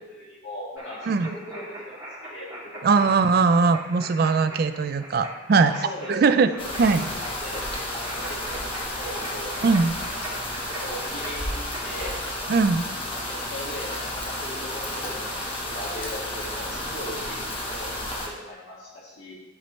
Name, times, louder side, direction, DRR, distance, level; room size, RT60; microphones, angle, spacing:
voice 1, 0.0-2.5 2.9-3.2 5.6-6.8 7.2-7.6 7.9-8.7 9.0-9.6 10.0-10.1 10.7-12.1 13.3-19.3, left 1 dB, 75° left, -7 dB, 1.8 m, -38 dB
sound 1, 0.8-11.8, right 1 dB, 15° right, 2.0 m, -41 dB
voice 2, 2.8-5.7 6.1-6.5 6.8-7.1 9.6-9.9 12.5-12.9, right 4 dB, 50° right, 10 dB, 0.3 m, -20 dB
sound 2, 6.6-18.3, left 1 dB, 25° left, 1.0 m, -32 dB
11.5 x 4.3 x 3.1 m, 1.0 s
head